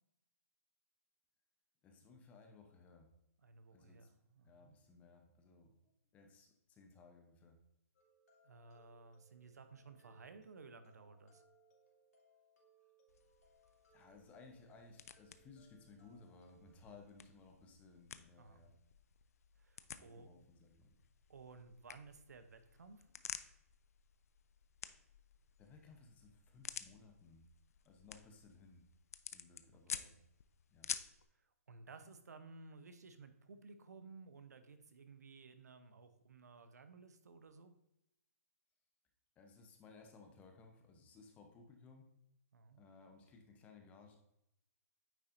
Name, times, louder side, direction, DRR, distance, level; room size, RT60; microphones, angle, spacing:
voice 1, 1.8-3.1 3.7-4.1 4.4-5.8 6.1-7.6 13.9-18.7 19.9-20.9 25.6-27.4 27.8-28.9 29.3-30.1 30.7-30.9 39.4-42.1 42.7-44.2, left 4 dB, 15° left, 4 dB, 0.8 m, -60 dB
voice 2, 3.4-4.8 8.4-11.4 18.4-18.6 19.6-20.3 21.3-23.1 29.9-30.2 31.3-37.8 42.5-42.8, right 4 dB, 85° right, 9 dB, 0.8 m, -57 dB
sound 1, 7.9-16.7, right 2 dB, 85° left, 2.2 m, -71 dB
sound 2, 13.1-31.3, left 8 dB, 65° left, 0.4 m, -52 dB
9.1 x 4.2 x 2.6 m, 0.82 s
hypercardioid pair, 150°, 9 cm